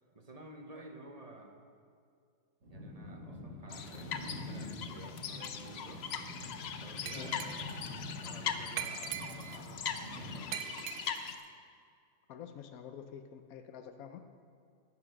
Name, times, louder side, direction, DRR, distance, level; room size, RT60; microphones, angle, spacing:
voice 1, 0.1-1.6 2.7-6.1 6.8-7.7 8.2-11.1, right 2 dB, 35° right, 4 dB, 0.8 m, -52 dB
sound 1, 2.6-10.4, left 1 dB, 55° right, 2.1 m, -46 dB
sound 2, 3.7-11.4, left 7 dB, 60° left, 0.8 m, -41 dB
Glass, 7.1-7.8 8.8-9.7 10.5-11.4, right 10 dB, 85° right, 1.0 m, -41 dB
voice 2, 12.3-14.2, left 8 dB, 85° left, 7 dB, 1.1 m, -47 dB
9.8 x 9.8 x 6.2 m, 2.3 s
omnidirectional pair, 1.5 m